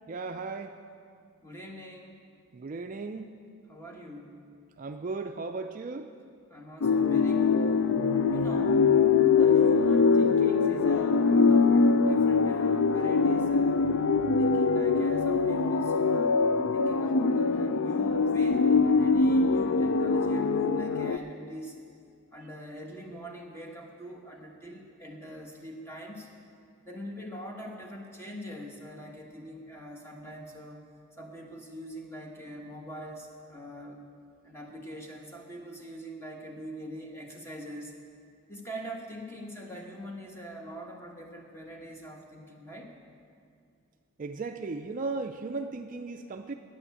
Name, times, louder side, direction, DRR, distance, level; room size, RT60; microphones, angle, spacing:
voice 1, 0.1-0.8 2.5-3.3 4.8-6.1 44.2-46.5, right 3 dB, 40° right, 6 dB, 0.4 m, -36 dB
voice 2, 1.4-2.2 3.7-4.4 6.5-7.8 8.3-8.9 9.4-14.0 14.4-16.4 16.7-21.8 22.3-26.3 26.8-30.9 31.2-34.0 34.4-38.0 38.5-42.9, equal, 10° left, 0 dB, 1.3 m, -43 dB
sound 1, 6.8-21.2, left 4 dB, 70° left, 0.4 m, -23 dB
10.0 x 8.7 x 8.0 m, 2.3 s
head